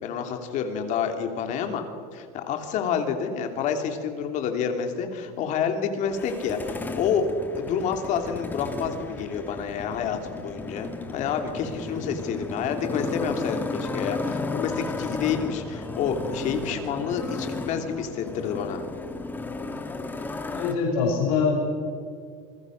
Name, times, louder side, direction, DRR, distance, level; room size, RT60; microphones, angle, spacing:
voice 1, 0.0-1.8 2.1-7.3 7.6-18.8, left 7 dB, 40° left, 5 dB, 2.9 m, -28 dB
Motorcycle, 6.1-20.7, left 3 dB, 10° left, 1.7 m, -34 dB
voice 2, 20.5-21.8, left 4 dB, 85° left, -1 dB, 6.3 m, -24 dB
28.0 x 21.5 x 6.5 m, 2.2 s
cardioid pair, 165°, 18 cm